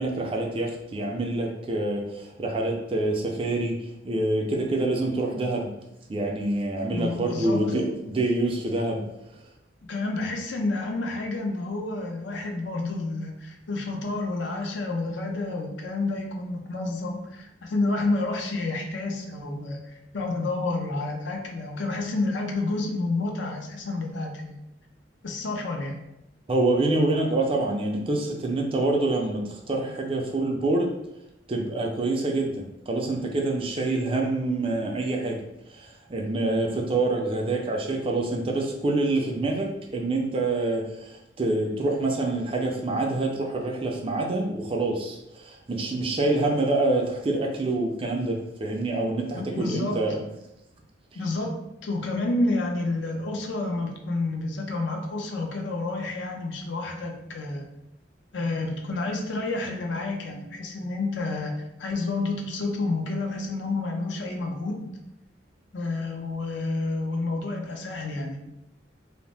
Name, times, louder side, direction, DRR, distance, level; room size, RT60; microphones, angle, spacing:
voice 1, 0.0-3.8 4.0-5.7 6.1-9.0 26.5-30.9 31.5-32.6 32.9-35.4 35.7-50.2, right 2 dB, 30° right, 1 dB, 0.4 m, -26 dB
voice 2, 6.9-8.0 9.9-24.6 25.2-26.0 49.3-50.0 51.1-51.5 51.8-57.6 58.3-65.0 65.7-68.4, left 2 dB, 70° left, 2 dB, 0.5 m, -29 dB
2.7 x 2.0 x 3.2 m, 0.86 s
head